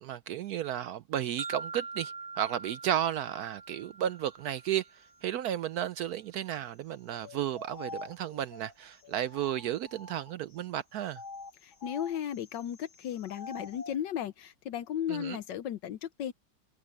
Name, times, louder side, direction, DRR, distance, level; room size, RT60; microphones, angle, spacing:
voice 1, 0.0-4.9 5.2-11.2 15.1-15.4, right 11 dB, 70° right, 0.9 m, -33 dB
sound 1, 1.4-5.4, right 4 dB, 35° right, 1.0 m, -44 dB
sound 2, 7.2-10.6 11.1-14.0, left 3 dB, 60° left, 3.1 m, -47 dB
voice 2, 11.6-16.3, left 10 dB, 75° left, 1.4 m, -35 dB
open air
omnidirectional pair, 2.0 m